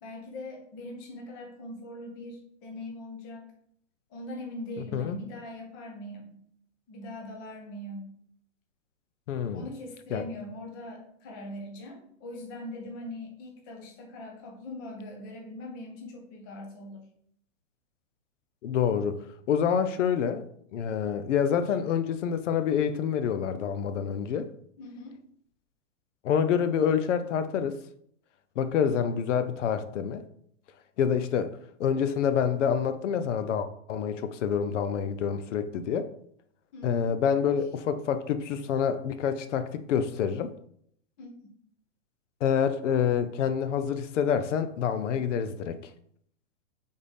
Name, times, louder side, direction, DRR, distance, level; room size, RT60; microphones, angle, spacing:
voice 1, 0.0-3.5 4.1-6.4 6.9-8.2 9.5-17.1 24.8-25.2 36.7-37.1 41.2-41.4, left 1 dB, 15° left, 0.5 m, -41 dB
voice 2, 9.3-9.7 10.1-10.2 18.6-20.4 20.7-24.5 26.2-27.8 28.6-30.2 31.0-36.1 36.8-40.5 42.4-45.9, left 7 dB, 75° left, 0.6 m, -27 dB
3.5 x 3.3 x 4.0 m
hypercardioid pair, 160°, 37 cm